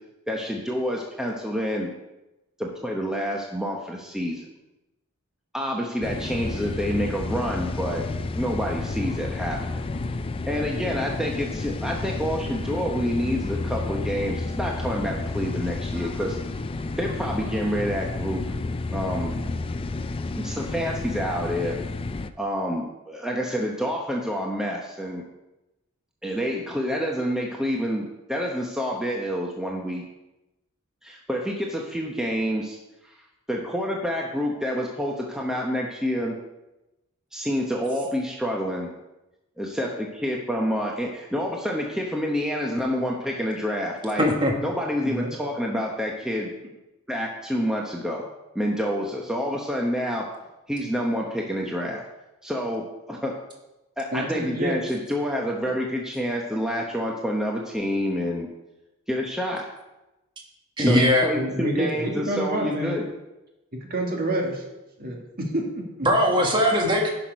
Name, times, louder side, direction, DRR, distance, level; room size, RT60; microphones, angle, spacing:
voice 1, 0.3-1.9 2.6-4.4 5.5-8.0 8.3-9.8 10.5-16.4 17.0-18.5 18.9-19.3 20.3-21.8 22.4-25.2 26.2-30.0 31.0-32.8 33.0-33.1 33.5-36.4 37.3-38.9 39.6-44.3 44.6-46.5 47.1-48.2 48.5-50.3 50.7-52.0 52.4-53.4 54.0-58.5 59.1-59.6 60.9-63.1, equal, 5° right, -1 dB, 0.8 m, -28 dB
sound 1, 6.0-22.3, left 3 dB, 25° left, 0.3 m, -31 dB
voice 2, 44.2-44.5 60.8-61.3 66.0-67.1, equal, 20° right, 0 dB, 1.4 m, -20 dB
voice 3, 45.0-45.3 54.1-54.8 61.4-63.0 63.7-64.6 65.0-66.1, right 1 dB, 45° right, 0 dB, 1.9 m, -28 dB
10.5 x 5.9 x 5.2 m, 0.99 s
head